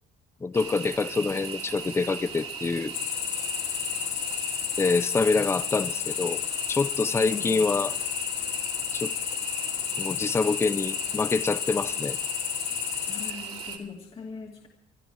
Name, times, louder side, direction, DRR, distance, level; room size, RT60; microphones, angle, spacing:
voice 1, 0.4-2.9 4.8-6.4 6.7-8.0 8.9-9.1 10.0-12.2, left 4 dB, 15° left, 0.5 m, -26 dB
sound 1, 0.5-13.8, right 5 dB, 40° right, 2.7 m, -38 dB
Cricket, 2.9-13.3, left 13 dB, 80° left, 0.9 m, -32 dB
voice 2, 7.2-7.6 13.1-14.7, left 5 dB, 35° left, 2.6 m, -39 dB
26.5 x 11.0 x 4.7 m
cardioid pair, 110°, 17 cm